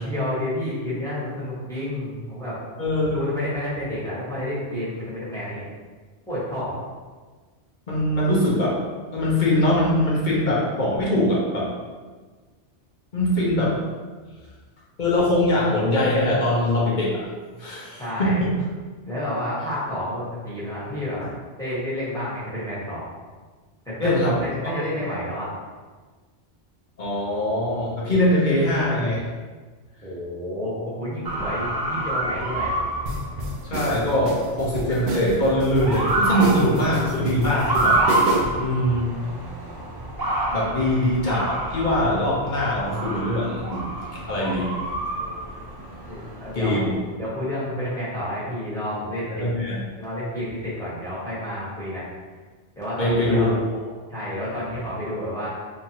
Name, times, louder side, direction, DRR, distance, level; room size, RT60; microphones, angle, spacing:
voice 1, 0.0-2.6 3.1-5.7 6.3-6.8 18.0-18.4 19.1-21.2 21.6-23.1 23.8-25.5 30.0-32.8 46.0-46.9 47.2-49.4 50.0-52.1 52.8-53.5 54.1-55.5, left 1 dB, 5° left, -10 dB, 1.2 m, -30 dB
voice 2, 2.8-3.1 7.9-8.8 9.1-11.7 13.1-13.8 15.0-17.3 17.6-18.5 21.2-21.3 24.0-24.4 24.6-24.7 27.0-29.2 33.6-38.0 38.6-39.1 40.5-43.9 44.1-44.7 46.5-46.9 49.4-49.8 53.0-53.6, left 1 dB, 45° left, -6 dB, 0.9 m, -22 dB
Motor vehicle (road) / Siren, 31.2-46.8, right 2 dB, 40° right, 0.3 m, -28 dB
sound 1, 33.1-38.7, right 2 dB, 65° right, 0.7 m, -30 dB
3.4 x 3.0 x 2.8 m, 1.4 s
omnidirectional pair, 1.2 m